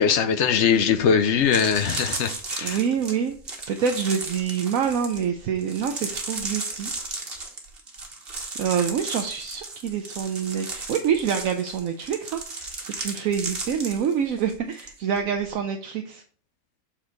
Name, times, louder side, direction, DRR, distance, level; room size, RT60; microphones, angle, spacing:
voice 1, 0.0-2.8, left 7 dB, 60° left, 0.9 m, -21 dB
sound 1, 0.9-1.0 1.4-14.9 15.2-15.5, right 3 dB, 40° right, 1.5 m, -35 dB
voice 2, 2.6-3.3 3.7-6.9 8.6-12.7 13.0-16.2, right 7 dB, 70° right, 1.0 m, -26 dB
7.3 x 4.4 x 3.9 m
omnidirectional pair, 1.5 m